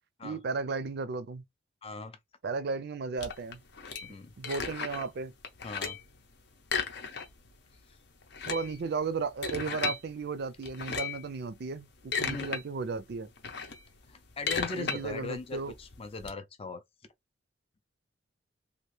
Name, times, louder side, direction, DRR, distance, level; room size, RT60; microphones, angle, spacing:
voice 1, 0.2-1.4 2.4-3.6 4.4-5.3 8.5-13.3 14.7-15.7, right 4 dB, 55° right, 0.4 m, -34 dB
voice 2, 1.8-2.2 4.0-4.3 5.6-6.0 12.2-12.5 14.1-16.8, left 4 dB, 30° left, 0.5 m, -39 dB
sound 1, 3.2-5.1 5.4-6.1 6.6-7.5 7.8-7.9 8.2-10.0 10.6-11.3 11.8-12.6 13.0-16.3, left 5 dB, 60° left, 0.7 m, -35 dB
2.9 x 2.5 x 3.2 m
head